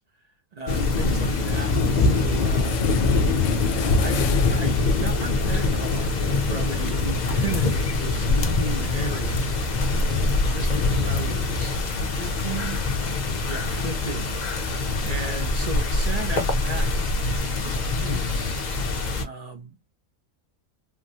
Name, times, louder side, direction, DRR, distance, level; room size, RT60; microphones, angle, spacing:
voice 1, 0.6-2.8 4.0-9.5 10.4-11.9 12.2-12.9 13.5-17.0 17.6-18.6 19.2-19.8, right 4 dB, 50° right, 0.4 m, -35 dB
sound 1, 0.7-19.2, left 3 dB, 45° left, 0.6 m, -24 dB
sound 2, 2.2-2.3 2.5-8.0, left 9 dB, 80° left, 0.9 m, -38 dB
3.5 x 2.1 x 2.7 m
omnidirectional pair, 1.4 m